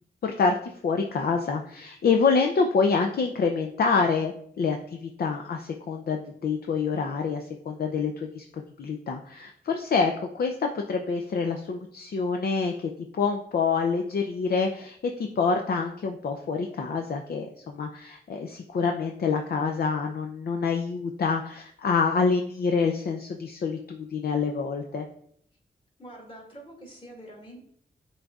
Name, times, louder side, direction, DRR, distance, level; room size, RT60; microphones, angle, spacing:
voice 1, 0.2-12.7 13.1-25.1, left 5 dB, 55° left, 3 dB, 0.5 m, -27 dB
voice 2, 26.0-27.6, right 1 dB, 30° left, -2 dB, 2.3 m, -45 dB
9.9 x 4.0 x 2.4 m, 0.66 s
wide cardioid pair, 120°, 19 cm